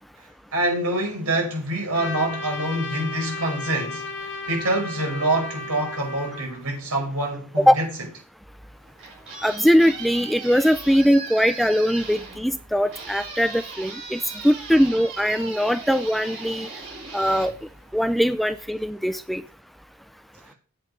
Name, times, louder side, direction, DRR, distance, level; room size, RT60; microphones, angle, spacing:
voice 1, 0.5-7.9, right 1 dB, 75° right, 5.3 m, -26 dB
Trumpet, 1.9-6.6, left 3 dB, 55° left, 2.1 m, -34 dB
sound 1, 8.7-18.4, right 4 dB, 60° right, 5.3 m, -38 dB
voice 2, 9.4-16.7 17.1-17.5 17.9-19.4, equal, ahead, 0.4 m, -21 dB
8.3 x 8.0 x 5.4 m
head